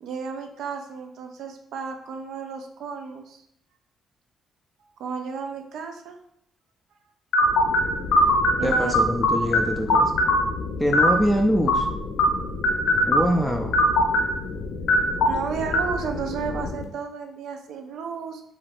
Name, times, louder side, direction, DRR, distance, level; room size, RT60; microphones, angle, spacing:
voice 1, 0.0-3.4 5.0-6.2 8.1-9.0 15.2-18.4, right 6 dB, 75° right, 5 dB, 0.4 m, -33 dB
sound 1, 7.3-16.8, left 1 dB, 80° left, 0.4 m, -23 dB
voice 2, 8.6-10.1 10.8-11.9 13.1-13.8, equal, ahead, 1 dB, 0.3 m, -24 dB
2.4 x 2.4 x 3.3 m, 0.74 s
cardioid pair, 90°, 0 cm